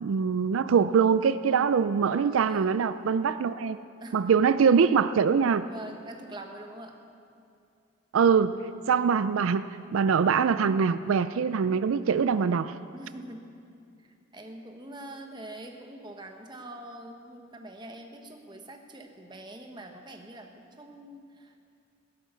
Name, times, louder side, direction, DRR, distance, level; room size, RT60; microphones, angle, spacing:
voice 1, 0.0-3.8 4.1-5.6 8.1-8.6 8.9-9.7 9.9-12.7, right 6 dB, 85° right, 13 dB, 0.4 m, -23 dB
voice 2, 2.2-2.8 4.0-4.3 5.7-7.0 12.9-13.5 14.0-21.6, right 1 dB, 20° right, 3 dB, 1.2 m, -44 dB
16.0 x 11.0 x 6.9 m, 2.5 s
head